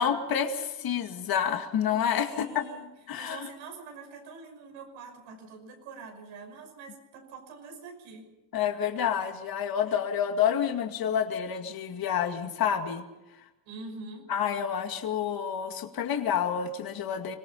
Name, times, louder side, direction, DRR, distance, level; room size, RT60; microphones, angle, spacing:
voice 1, 0.0-2.6 3.1-3.5 8.5-13.0 14.3-17.4, left 8 dB, 50° left, 5 dB, 2.3 m, -28 dB
voice 2, 2.3-2.9 3.2-8.3 13.7-14.3, right 4 dB, 85° right, 3 dB, 5.9 m, -45 dB
25.5 x 18.0 x 5.7 m, 0.99 s
cardioid pair, 105°, 45 cm